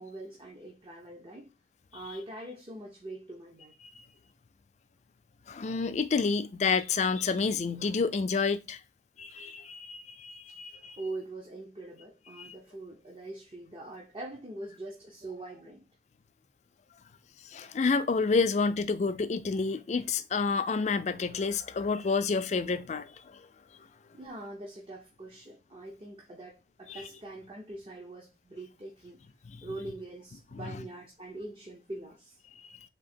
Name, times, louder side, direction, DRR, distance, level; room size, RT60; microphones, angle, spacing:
voice 1, 0.0-1.5 1.9-3.7 11.0-15.9 24.1-29.2 29.6-32.4, right 2 dB, 30° right, 0.6 m, -43 dB
voice 2, 5.5-8.8 9.2-11.0 12.4-12.5 17.5-23.4 26.9-27.0 29.5-29.6 30.5-30.8, left 4 dB, 40° left, 0.4 m, -29 dB
3.7 x 2.8 x 4.2 m
head